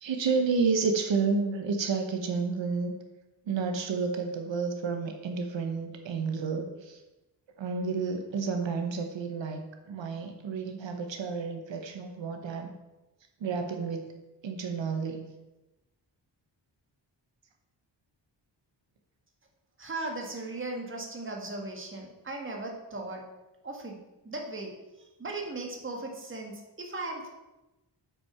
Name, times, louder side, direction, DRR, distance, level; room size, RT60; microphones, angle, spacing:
voice 1, 0.0-2.9 3.5-7.0 7.6-12.7 13.4-14.1 14.4-15.3, right 4 dB, 80° right, 5 dB, 1.1 m, -30 dB
voice 2, 19.8-23.2 23.6-24.0 24.2-24.7 25.2-27.3, right 2 dB, 25° right, 1 dB, 1.7 m, -37 dB
8.3 x 6.0 x 5.6 m, 1.0 s
wide cardioid pair, 155°, 44 cm